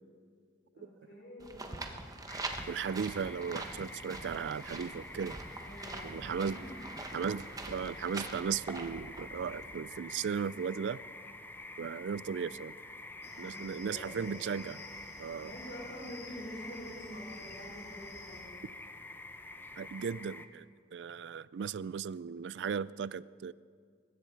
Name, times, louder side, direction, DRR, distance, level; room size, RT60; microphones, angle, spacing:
voice 1, 0.7-1.8 5.6-6.1 6.5-6.7 13.3-14.2 15.4-18.5, equal, 70° left, -4 dB, 5.2 m, -47 dB
sound 1, 1.4-9.7, right 2 dB, 20° right, 1.1 m, -44 dB
sound 2, 2.3-20.5, left 2 dB, 10° left, 0.7 m, -48 dB
voice 2, 2.7-5.4 6.0-6.6 7.1-11.0 11.8-12.8 13.4-14.8 15.2-15.5 19.8-20.7 20.9-23.5, right 6 dB, 80° right, 20 dB, 0.4 m, -36 dB
sound 3, 13.2-18.4, left 2 dB, 40° left, 3.9 m, -53 dB
20.0 x 15.5 x 4.6 m, 2.2 s
head